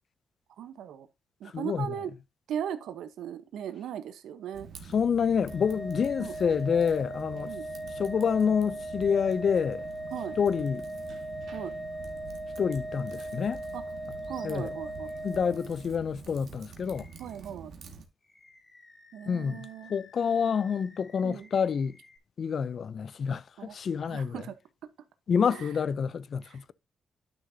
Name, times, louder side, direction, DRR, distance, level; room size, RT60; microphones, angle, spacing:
voice 1, 0.6-1.1 1.4-2.1 2.5-4.7 6.2-6.3 7.5-7.6 10.1-10.3 11.5-11.7 13.7-13.8 14.3-15.1 17.2-17.7 19.1-19.9 21.2-21.5 23.6-23.8 24.1-24.6 25.5-25.7, right 9 dB, 85° right, 1.0 m, -38 dB
voice 2, 1.5-1.9 4.9-7.5 8.0-9.9 10.4-10.9 12.6-13.6 14.4-14.7 15.2-17.1 19.3-22.0 22.4-24.5 25.3-26.7, left 6 dB, 60° left, 0.5 m, -28 dB
Typing, 4.5-18.1, right 5 dB, 70° right, 1.8 m, -47 dB
Organ, 5.5-16.2, right 1 dB, 5° right, 1.8 m, -39 dB
Animal, 14.2-14.6 15.0-15.2 16.8-17.5 18.2-22.2, left 3 dB, 30° left, 2.5 m, -56 dB
11.0 x 6.4 x 2.7 m
cardioid pair, 80°, 0 cm